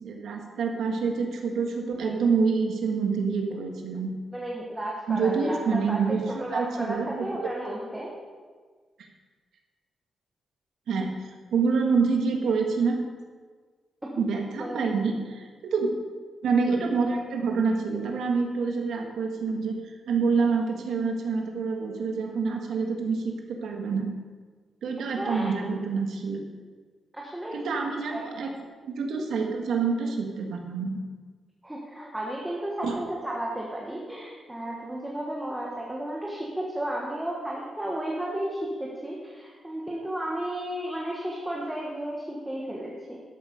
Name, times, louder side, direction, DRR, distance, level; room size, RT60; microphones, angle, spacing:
voice 1, 0.0-4.1 5.1-6.2 6.5-7.5 10.9-11.1 11.5-13.0 14.2-15.9 16.4-24.1 24.8-26.4 27.5-28.5 28.8-31.0 32.8-33.0, right 5 dB, 85° right, 2 dB, 1.8 m, -27 dB
voice 2, 4.3-8.1 14.6-14.8 25.2-25.5 27.1-27.8 28.1-28.2 31.6-43.2, right 1 dB, 5° right, -3 dB, 1.3 m, -33 dB
12.5 x 8.5 x 5.2 m, 1.5 s
wide cardioid pair, 175°, 0 cm